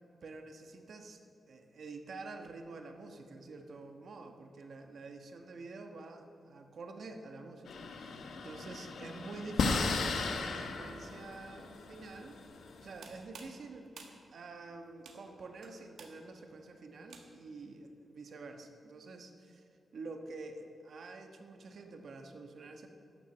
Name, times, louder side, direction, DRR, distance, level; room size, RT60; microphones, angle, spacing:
voice 1, 0.2-1.2 1.5-19.6 19.9-22.9, right 3 dB, 60° right, 5 dB, 1.2 m, -48 dB
sound 1, 7.7-13.2, left 4 dB, 85° left, 1.1 m, -36 dB
sound 2, 12.9-17.6, right 5 dB, 80° right, 1.4 m, -55 dB
12.0 x 7.4 x 7.7 m, 2.7 s
wide cardioid pair, 155°, 0 cm